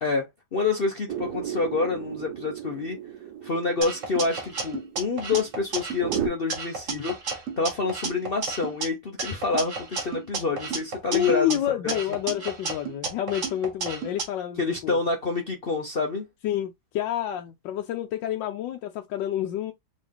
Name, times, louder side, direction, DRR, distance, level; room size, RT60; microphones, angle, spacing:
voice 1, 0.5-3.0 3.4-7.1 7.6-11.6 11.8-12.0 14.6-16.3, left 4 dB, 60° left, 0.5 m, -27 dB
sound 1, 1.1-6.3, right 9 dB, 65° right, 1.4 m, -34 dB
sound 2, 3.8-6.2 6.5-8.9 9.2-11.5 11.9-14.2, right 4 dB, 45° right, 1.5 m, -32 dB
voice 2, 11.1-15.0 16.4-19.7, left 11 dB, 80° left, 1.3 m, -28 dB
3.9 x 3.1 x 3.5 m
omnidirectional pair, 2.0 m